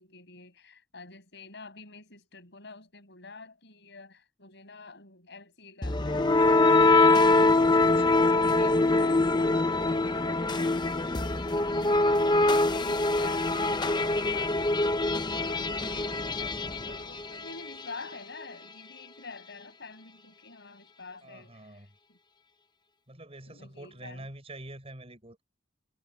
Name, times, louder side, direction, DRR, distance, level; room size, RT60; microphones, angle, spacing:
voice 1, 0.0-22.2 23.5-24.3, left 3 dB, 65° left, 6.4 m, -48 dB
sound 1, 5.8-17.7, left 2 dB, 25° left, 0.8 m, -24 dB
voice 2, 7.1-8.2 21.2-22.0 23.1-25.4, right 1 dB, 30° right, 6.6 m, -46 dB
head